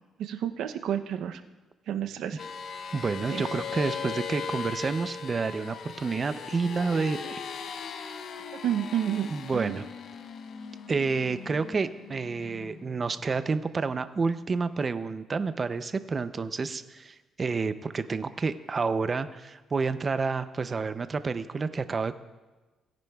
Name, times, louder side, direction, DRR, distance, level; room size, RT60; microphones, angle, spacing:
voice 1, 0.2-1.4 1.9-2.4 3.3-3.4 8.6-9.8, right 10 dB, 80° right, 8 dB, 0.6 m, -30 dB
sound 1, 2.4-13.2, left 6 dB, 65° left, 0.7 m, -39 dB
voice 2, 2.9-7.4 9.3-9.8 10.9-22.2, right 4 dB, 35° right, 12 dB, 0.5 m, -29 dB
18.0 x 10.5 x 2.3 m, 1.2 s
cardioid pair, 90°, 0 cm